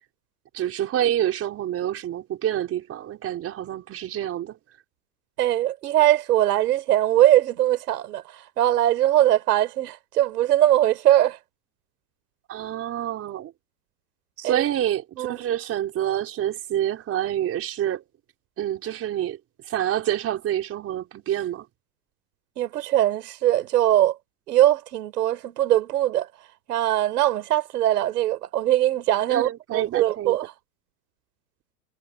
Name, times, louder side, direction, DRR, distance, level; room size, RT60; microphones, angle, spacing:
voice 1, 0.5-4.6 12.5-13.5 14.4-18.0 18.6-19.4 19.7-21.7 29.3-30.4, right 11 dB, 30° right, 5.4 m, -27 dB
voice 2, 5.4-11.4 14.4-14.6 15.2-15.4 22.6-24.2 24.5-26.3 26.7-30.5, right 13 dB, 85° right, 6.0 m, -21 dB
supercardioid pair, 140°, 46 cm